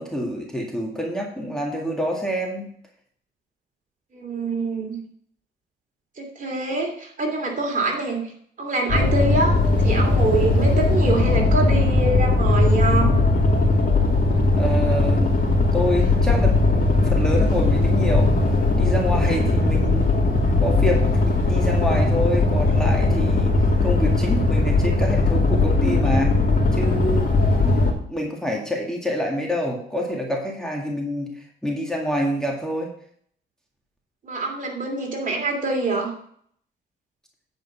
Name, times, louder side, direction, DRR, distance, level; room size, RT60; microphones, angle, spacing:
voice 1, 0.0-2.7 14.5-18.3 18.8-20.1 20.6-23.5 23.8-26.4 26.7-27.3 27.6-32.9, equal, 5° left, -1 dB, 1.9 m, -27 dB
voice 2, 4.1-5.0 6.2-8.2 8.6-13.2 19.3-19.7 34.2-36.1, right 3 dB, 40° right, 1 dB, 2.9 m, -25 dB
sound 1, 8.9-27.9, left 2 dB, 45° left, 2.6 m, -19 dB
9.4 x 5.3 x 5.5 m, 0.62 s
cardioid pair, 90°, 20 cm